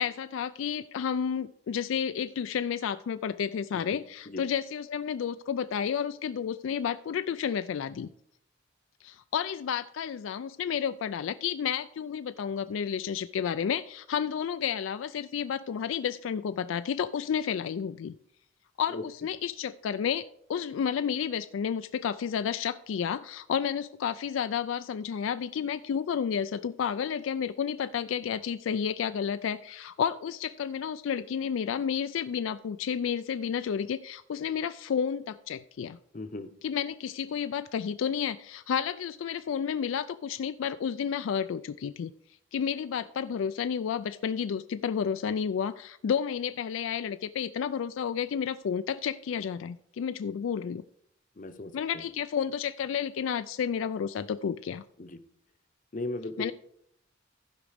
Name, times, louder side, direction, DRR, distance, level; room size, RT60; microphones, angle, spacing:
voice 1, 0.0-8.1 9.0-18.1 18.8-36.0 36.6-42.1 42.5-50.8 51.7-54.8 56.4-56.5, left 7 dB, 75° left, 12 dB, 0.3 m, -31 dB
voice 2, 3.9-4.4 18.9-19.0 36.1-36.5 51.4-52.0 55.0-55.2 55.9-56.5, left 2 dB, 40° left, 9 dB, 0.7 m, -37 dB
15.0 x 5.1 x 5.0 m, 0.71 s
head